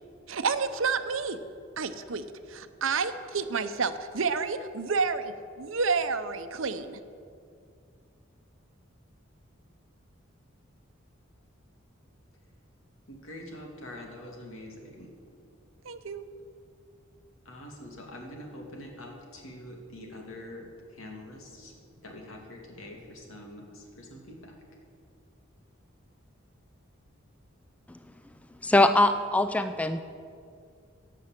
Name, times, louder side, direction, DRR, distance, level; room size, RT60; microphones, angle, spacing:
voice 1, 0.3-1.4 1.8-7.0 15.8-16.3, right 5 dB, 80° right, 10 dB, 0.7 m, -30 dB
voice 2, 13.1-15.2 17.4-24.6, left 1 dB, 85° left, 0 dB, 2.4 m, -45 dB
voice 3, 28.6-30.0, left 2 dB, 5° left, 9 dB, 0.3 m, -22 dB
16.0 x 6.3 x 7.5 m, 2.3 s
head